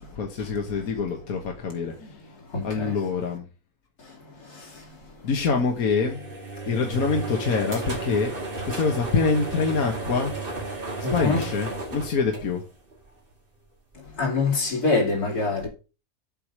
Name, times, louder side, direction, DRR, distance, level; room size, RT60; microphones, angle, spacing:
voice 1, 0.1-2.2 2.6-3.5 5.2-6.3 6.7-8.3 8.6-10.3 11.0-12.6, left 4 dB, 70° left, 1.7 m, -25 dB
voice 2, 2.5-2.9 4.5-4.6 11.0-11.4 14.2-15.7, left 3 dB, 90° left, 3.4 m, -24 dB
sound 1, 5.8-13.1, right 2 dB, 35° right, 2.2 m, -33 dB
7.7 x 4.9 x 7.3 m
omnidirectional pair, 1.6 m